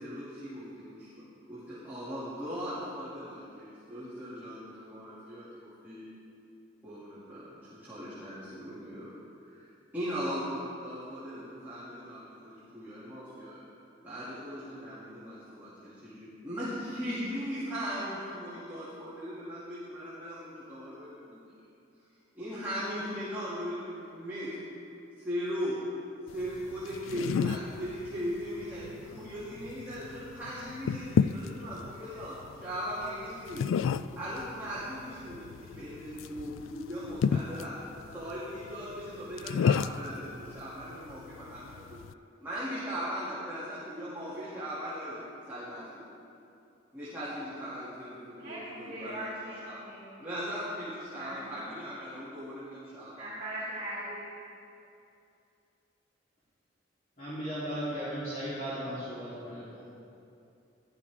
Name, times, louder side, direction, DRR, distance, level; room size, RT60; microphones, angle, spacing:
voice 1, 0.0-6.1 6.8-9.1 9.5-13.6 14.0-21.4 22.3-24.5 25.2-25.8 26.3-37.7 38.1-42.0 42.4-45.2 45.4-46.1 46.9-49.8 50.2-53.3, equal, 10° right, -12 dB, 2.7 m, -39 dB
sound 1, 26.3-42.1, left 6 dB, 90° left, 0.3 m, -34 dB
voice 2, 48.4-50.1 51.1-51.7 53.2-54.4, right 1 dB, 30° right, -13 dB, 3.8 m, -40 dB
voice 3, 57.2-59.6, equal, 45° left, -13 dB, 3.7 m, -36 dB
16.0 x 12.5 x 3.7 m, 2.6 s
head